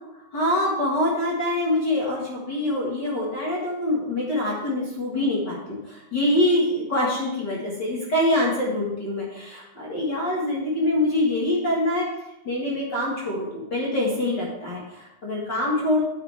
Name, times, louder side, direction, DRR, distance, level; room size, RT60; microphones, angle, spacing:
voice 1, 0.3-12.1 12.4-16.0, left 1 dB, 40° left, -4 dB, 1.6 m, -25 dB
9.2 x 9.2 x 3.5 m, 0.91 s
omnidirectional pair, 4.6 m